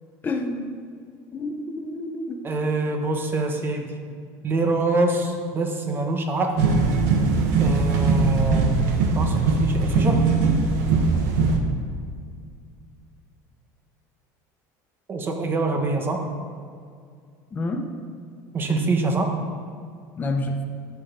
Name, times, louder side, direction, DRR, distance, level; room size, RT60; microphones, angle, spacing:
voice 1, 0.2-0.6 1.3-2.4 17.5-17.9 20.2-20.6, left 2 dB, 20° left, 3 dB, 0.9 m, -28 dB
voice 2, 2.4-3.9 4.4-6.7 7.6-8.7 9.1-10.3 15.1-16.3 18.5-19.4, right 3 dB, 25° right, 4 dB, 1.3 m, -25 dB
sound 1, 6.6-11.6, right 4 dB, 80° right, 1.3 m, -20 dB
12.0 x 7.1 x 5.3 m, 2.2 s
cardioid pair, 145°, 9 cm